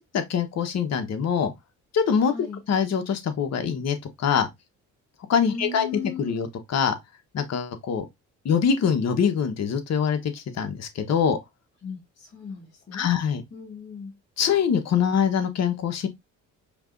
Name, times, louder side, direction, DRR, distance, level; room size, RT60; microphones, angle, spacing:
voice 1, 0.1-1.5 1.9-2.3 2.7-4.5 5.3-5.9 6.2-6.9 7.3-8.0 8.4-11.4 12.9-13.4 14.4-16.1, left 7 dB, 60° left, 1.0 m, -24 dB
voice 2, 2.2-2.6 5.4-6.5 11.8-13.1 13.5-14.2, left 4 dB, 40° left, 1.8 m, -37 dB
5.2 x 3.0 x 2.5 m
cardioid pair, 90°, 30 cm